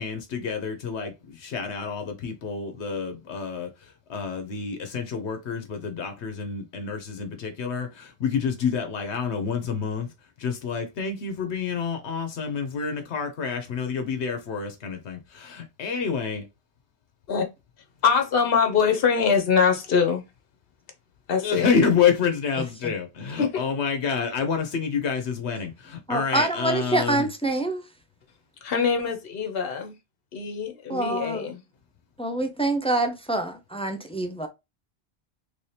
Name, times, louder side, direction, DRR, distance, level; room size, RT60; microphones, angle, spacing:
voice 1, 0.0-10.1 10.4-16.4 21.4-27.3, left 6 dB, 85° left, 1.0 m, -28 dB
voice 2, 18.0-20.2 21.3-21.7 23.4-23.6 28.6-29.9 30.3-31.6, left 6 dB, 60° left, 1.1 m, -23 dB
voice 3, 26.1-27.8 30.9-31.5 32.2-34.5, right 2 dB, 10° left, 0.3 m, -26 dB
3.3 x 2.8 x 3.1 m
omnidirectional pair, 1.1 m